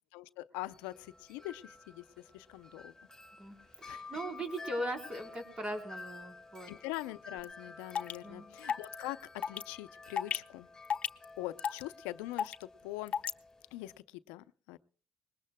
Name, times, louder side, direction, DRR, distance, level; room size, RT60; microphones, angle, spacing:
voice 1, 0.1-2.9 3.9-4.1 6.7-10.7 11.4-13.1 13.7-14.8, left 17 dB, 90° left, 14 dB, 0.6 m, -43 dB
Wind chime, 0.6-14.0, left 3 dB, 15° left, 2.2 m, -51 dB
voice 2, 3.4-6.7 8.2-8.5, right 1 dB, 35° right, 5 dB, 4.0 m, -39 dB
sound 1, 7.4-7.5 7.9-8.2 8.7-9.0 9.4-9.6 10.2-10.4 10.9-11.3 11.6-11.8 12.4-12.6 13.1-13.3, left 7 dB, 55° left, 0.8 m, -32 dB
20.5 x 19.5 x 2.2 m, 0.41 s
supercardioid pair, 70°, 3 cm